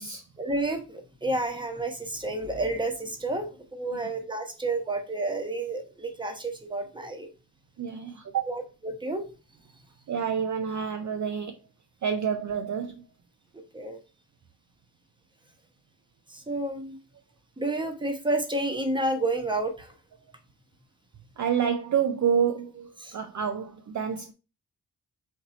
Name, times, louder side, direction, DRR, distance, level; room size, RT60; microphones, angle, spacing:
voice 1, 0.4-7.3 8.5-9.2 13.7-14.0 16.3-17.0 17.6-19.9 23.0-23.2, right 2 dB, 10° right, 0.9 m, -30 dB
voice 2, 7.8-8.5 10.1-11.6 12.0-13.1 21.4-24.3, right 7 dB, 45° right, 0.4 m, -28 dB
4.2 x 2.6 x 4.0 m
wide cardioid pair, 85°, 43 cm